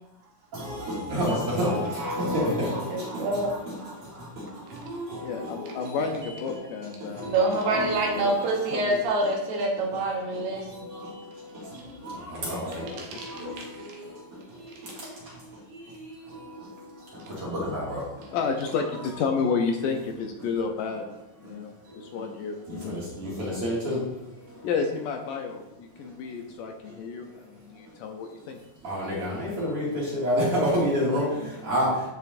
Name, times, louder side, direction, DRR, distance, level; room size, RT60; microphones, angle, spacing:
voice 1, 0.5-3.8 4.4-4.5 4.7-6.0 7.2-7.9 8.4-8.5 11.0-11.1 12.0-12.9 13.4-13.5 17.4-18.0 22.7-24.0 28.8-29.9 30.1-31.9, equal, 45° right, -6 dB, 2.9 m, -28 dB
voice 2, 2.9-3.5 7.2-10.9 12.9-14.0 14.9-15.0, right 2 dB, 75° right, 0 dB, 2.8 m, -27 dB
voice 3, 5.2-7.3 8.1-8.3 8.7-9.0 12.5-13.7 18.3-21.1 21.4-21.7 22.0-23.0 24.6-28.6, left 5 dB, 75° left, 3 dB, 2.1 m, -31 dB
14.0 x 4.9 x 2.6 m, 0.96 s
omnidirectional pair, 4.1 m